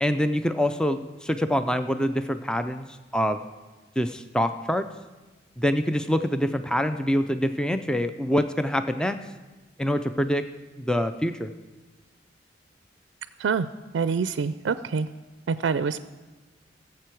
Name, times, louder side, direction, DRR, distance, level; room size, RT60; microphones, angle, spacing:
voice 1, 0.0-3.4 4.0-4.8 5.6-9.2 9.8-10.4 10.8-11.5, equal, 5° left, 9 dB, 0.4 m, -25 dB
voice 2, 13.9-15.1 15.5-16.0, right 5 dB, 75° right, 13 dB, 0.4 m, -25 dB
19.0 x 7.6 x 4.6 m, 1.2 s
head